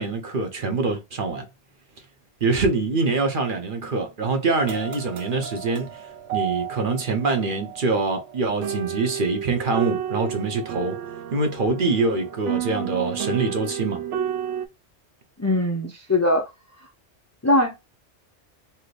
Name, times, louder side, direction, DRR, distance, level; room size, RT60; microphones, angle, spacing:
voice 1, 0.0-1.4 2.4-6.0 6.3-11.0 11.3-14.1, right 3 dB, 50° right, 0.9 m, -24 dB
sound 1, 4.6-14.7, right 9 dB, 90° right, 0.9 m, -32 dB
voice 2, 15.4-16.5 17.4-17.7, left 1 dB, 25° left, 0.4 m, -21 dB
3.3 x 2.8 x 2.4 m
omnidirectional pair, 1.2 m